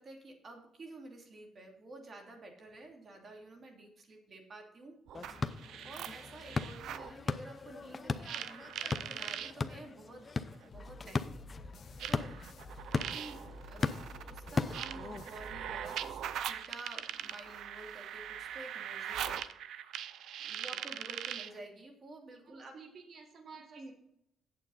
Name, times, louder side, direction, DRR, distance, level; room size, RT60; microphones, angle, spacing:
voice 1, 0.0-5.0 5.8-10.3 10.6-11.7 12.0-12.4 12.9-19.6 20.4-22.8 23.7-23.9, right 2 dB, 45° right, 2 dB, 2.7 m, -51 dB
sound 1, 5.1-15.3, left 4 dB, 30° left, 0.6 m, -38 dB
sound 2, 5.1-7.1 8.2-9.5 10.6-10.7 12.0-21.6, right 10 dB, 80° right, 0.5 m, -41 dB
sound 3, 10.7-16.8, left 1 dB, 60° left, 1.2 m, -51 dB
voice 2, 20.5-20.9 22.4-23.9, right 5 dB, 60° right, 4 dB, 1.9 m, -53 dB
8.8 x 7.7 x 4.1 m, 0.75 s
cardioid pair, 90°, 0 cm